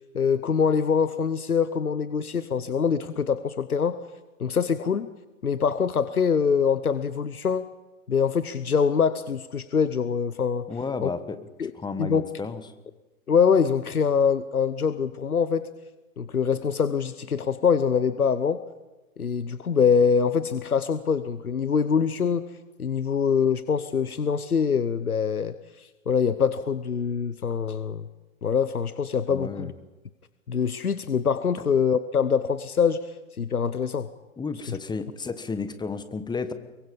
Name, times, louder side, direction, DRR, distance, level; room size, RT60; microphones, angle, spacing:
voice 1, 0.1-4.0 4.4-5.1 5.4-7.7 8.1-10.6 11.0-11.1 11.6-11.7 12.0-12.2 13.3-15.7 16.2-18.6 19.2-22.5 22.8-28.1 28.4-29.7 30.5-34.1, left 6 dB, 90° left, 13 dB, 0.9 m, -24 dB
voice 2, 10.7-11.4 11.7-12.6 29.3-29.7 34.4-36.5, left 4 dB, 10° left, 11 dB, 1.3 m, -32 dB
23.5 x 23.0 x 5.4 m, 1.1 s
figure-of-eight pair, 110°, 43 cm